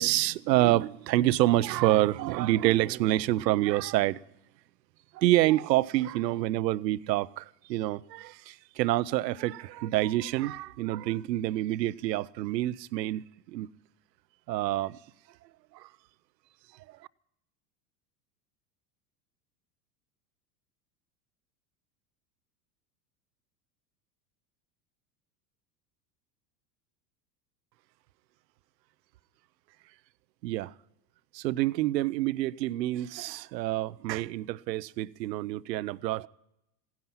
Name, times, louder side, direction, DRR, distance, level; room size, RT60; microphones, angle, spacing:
voice 1, 0.0-4.2 5.1-13.7 14.5-15.0 15.7-15.9 30.4-30.7 31.3-36.3, right 16 dB, 85° right, 0.6 m, -27 dB
16.5 x 10.5 x 5.5 m
hypercardioid pair, 105°, 49 cm